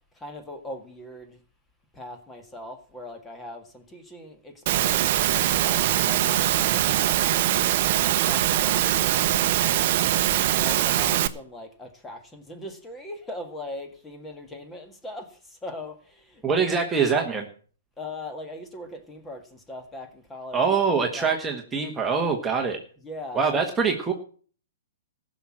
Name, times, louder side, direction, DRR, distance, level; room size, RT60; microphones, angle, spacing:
voice 1, 0.1-1.4 1.9-7.6 7.9-9.8 10.2-16.4 18.0-20.6 21.1-21.4 23.0-23.7, left 1 dB, 10° left, 1.9 m, -40 dB
Engine / Mechanisms, 4.7-11.3, right 13 dB, 45° right, 0.9 m, -22 dB
voice 2, 16.4-17.5 20.5-22.8 23.3-24.1, right 5 dB, 10° right, 1.4 m, -24 dB
15.0 x 6.3 x 7.5 m
hypercardioid pair, 140°, 0 cm